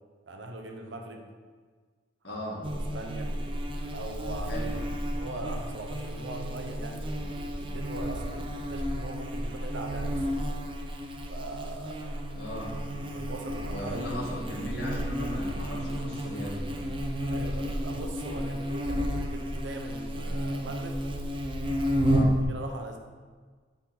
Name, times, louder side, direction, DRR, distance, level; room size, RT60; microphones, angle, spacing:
voice 1, 0.3-1.3 2.2-2.5 2.7-3.3 3.9-4.8 5.1-10.4 11.3-12.3 13.0-14.6 17.2-21.0 22.4-23.0, right 2 dB, 80° right, 3 dB, 0.8 m, -41 dB
voice 2, 2.2-2.6 4.5-4.7 12.3-12.7 13.6-16.7 22.0-22.4, equal, 65° left, -3 dB, 1.5 m, -37 dB
Buzz, 2.6-22.4, equal, 25° right, 0.5 m, -32 dB
7.7 x 3.9 x 4.2 m, 1.5 s
head